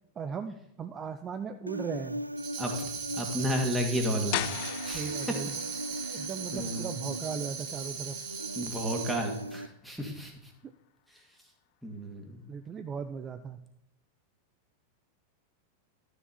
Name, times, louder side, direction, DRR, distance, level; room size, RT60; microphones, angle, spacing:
voice 1, 0.2-2.2 4.9-5.5 6.1-8.2 12.5-13.7, right 6 dB, 25° right, 9 dB, 0.6 m, -37 dB
Human voice, 1.7-9.7, right 1 dB, 85° right, 0.3 m, -39 dB
Tambourine, 2.4-9.5, right 7 dB, 45° right, 2.0 m, -39 dB
voice 2, 2.6-4.5 4.8-5.1 6.0-6.3 6.5-7.1 8.6-10.5 11.8-12.4, equal, ahead, 1 dB, 2.3 m, -33 dB
sound 1, 4.3-10.0, left 18 dB, 45° left, 0.3 m, -41 dB
12.5 x 7.5 x 4.1 m, 0.83 s
figure-of-eight pair, 90°, 0 cm